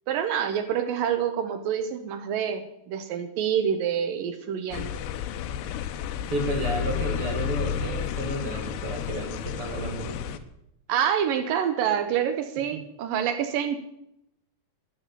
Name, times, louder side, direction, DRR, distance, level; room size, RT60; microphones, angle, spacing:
voice 1, 0.1-5.0 10.9-13.8, right 8 dB, 75° right, 8 dB, 2.1 m, -27 dB
sound 1, 4.7-10.4, left 9 dB, 85° left, 2.9 m, -31 dB
voice 2, 6.3-10.3 12.7-12.8, right 2 dB, 50° right, 2 dB, 1.7 m, -32 dB
13.5 x 8.8 x 6.8 m, 0.79 s
omnidirectional pair, 4.9 m